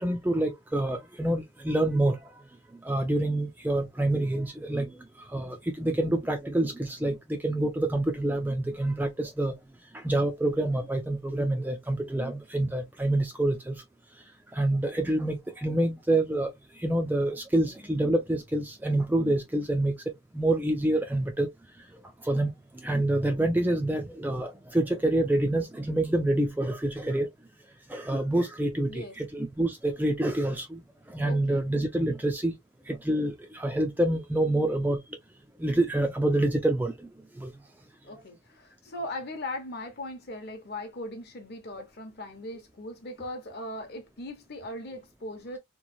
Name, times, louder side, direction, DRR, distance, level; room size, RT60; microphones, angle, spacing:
voice 1, 0.0-2.2 2.8-4.9 5.3-9.5 9.9-13.8 14.5-16.5 16.8-19.9 20.3-21.5 22.2-22.5 22.8-27.3 27.9-30.8 31.1-32.5 32.9-35.0 35.6-36.9 37.4-37.5, right 1 dB, 10° right, 0.3 m, -27 dB
voice 2, 31.3-31.7 38.0-45.6, left 1 dB, 45° left, 0.8 m, -39 dB
3.0 x 2.2 x 2.5 m
head